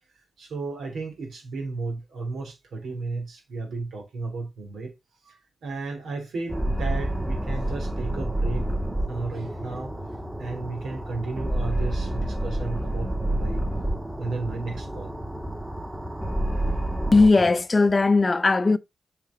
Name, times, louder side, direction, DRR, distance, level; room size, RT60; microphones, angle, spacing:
voice 1, 0.4-4.9 5.2-8.7 9.1-9.9 10.4-13.6 14.2-15.1, right 3 dB, 80° right, 3.3 m, -34 dB
sound 1, 6.5-17.3, right 1 dB, 15° right, 1.6 m, -29 dB
voice 2, 17.1-18.8, left 3 dB, 35° left, 0.6 m, -18 dB
7.4 x 5.1 x 3.9 m
supercardioid pair, 50°, 0 cm